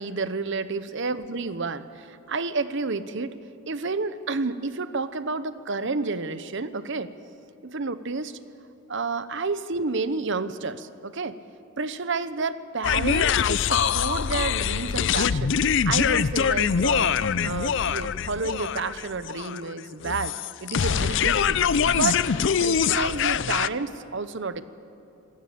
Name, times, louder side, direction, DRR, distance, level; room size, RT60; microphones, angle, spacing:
voice 1, 0.0-3.4 3.7-7.1 7.6-8.4 8.9-11.4 11.8-15.6 15.8-17.2 17.4-21.6 21.9-22.3 22.6-24.6, right 3 dB, 55° right, 13 dB, 0.9 m, -30 dB
sound 1, 12.8-23.7, left 7 dB, 55° left, 0.5 m, -24 dB
27.0 x 15.0 x 8.6 m, 2.7 s
head